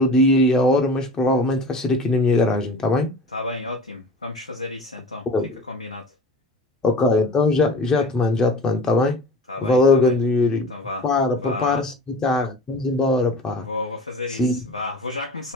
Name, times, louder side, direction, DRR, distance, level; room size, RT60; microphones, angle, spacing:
voice 1, 0.0-3.1 5.3-5.6 6.8-9.2 9.6-10.7 11.0-13.7 14.4-14.6, left 2 dB, 20° left, 0.7 m, -20 dB
voice 2, 3.3-5.3 5.7-6.1 7.9-8.1 9.5-10.1 10.7-11.1 11.4-11.8 13.6-15.5, left 2 dB, 80° left, 0.7 m, -32 dB
3.0 x 2.9 x 3.2 m
figure-of-eight pair, 95°, 3 cm